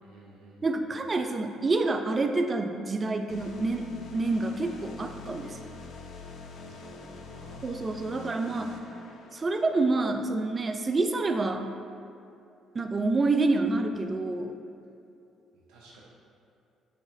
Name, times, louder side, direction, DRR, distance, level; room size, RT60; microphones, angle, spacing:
voice 1, 0.0-0.9 6.6-7.7 15.5-16.0, right 1 dB, 80° right, -4 dB, 0.6 m, -53 dB
voice 2, 0.6-3.9 4.1-5.6 7.6-8.8 9.3-11.7 12.7-14.5, right 3 dB, 35° right, 6 dB, 0.4 m, -27 dB
sound 1, 3.3-9.8, left 4 dB, 65° left, 0.5 m, -44 dB
6.4 x 2.9 x 2.6 m, 2.6 s
supercardioid pair, 65°, 0 cm